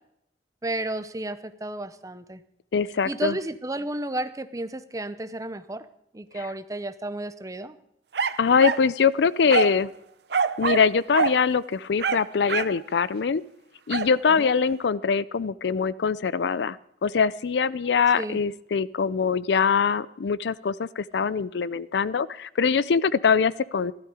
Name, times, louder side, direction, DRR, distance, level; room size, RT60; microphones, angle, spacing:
voice 1, 0.6-2.4 3.0-5.9 6.1-7.8 14.4-14.5 18.2-18.4, right 1 dB, 20° right, 12 dB, 0.7 m, -32 dB
voice 2, 2.7-3.4 6.3-6.5 8.4-9.9 10.6-13.4 13.9-16.8 17.0-23.9, left 6 dB, 75° left, 19 dB, 0.4 m, -23 dB
sound 1, 8.1-8.9 9.5-9.8 10.3-10.9 11.1-11.4 12.0-12.8 13.9-14.1, right 5 dB, 65° right, 0.6 m, -25 dB
15.5 x 13.0 x 4.9 m, 0.76 s
head